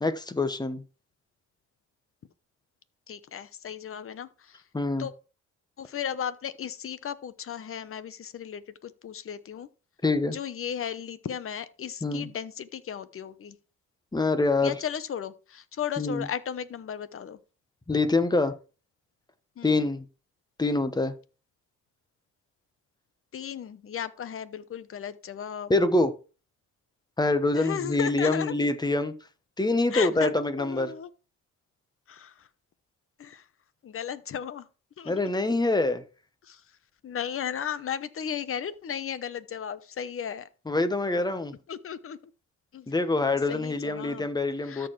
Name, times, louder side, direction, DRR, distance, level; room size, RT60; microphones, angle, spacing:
voice 1, 0.0-0.8 4.7-5.0 10.0-10.4 12.0-12.3 14.1-14.7 16.0-16.2 17.9-18.5 19.6-20.0 20.6-21.1 25.7-26.1 27.2-29.1 29.6-30.9 35.1-36.0 40.7-41.5 42.9-44.9, left 2 dB, 15° left, 1.1 m, -25 dB
voice 2, 3.1-4.6 5.0-5.1 5.8-9.7 10.3-13.6 14.6-17.4 19.6-19.9 23.3-25.7 27.5-28.5 29.9-30.3 30.6-31.1 32.1-32.5 33.2-33.5 33.8-34.7 35.0-35.3 36.4-36.8 37.0-40.5 41.7-42.2 42.7-42.9 43.5-44.3 44.6-44.9, left 8 dB, 45° left, 0.9 m, -35 dB
13.5 x 4.6 x 3.2 m
cardioid pair, 90°, 30 cm